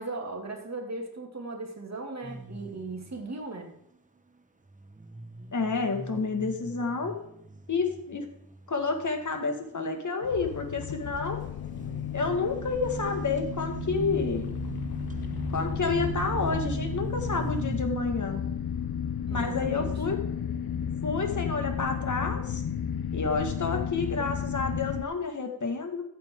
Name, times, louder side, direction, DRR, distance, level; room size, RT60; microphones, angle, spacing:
voice 1, 0.0-3.7 19.3-20.0, right 2 dB, 45° right, 2 dB, 2.5 m, -37 dB
sound 1, 2.2-3.2 4.7-9.2 9.6-10.1 11.6-17.8, right 3 dB, 20° right, 1.1 m, -38 dB
voice 2, 5.5-7.2 7.7-8.3 8.7-11.4 12.1-14.5 15.5-18.4 19.3-20.2 21.0-22.6 23.1-26.0, left 4 dB, 55° left, 5 dB, 1.9 m, -29 dB
sound 2, 10.2-25.0, left 8 dB, 80° left, 0.8 m, -33 dB
14.5 x 8.2 x 3.7 m, 0.75 s
wide cardioid pair, 75°, 36 cm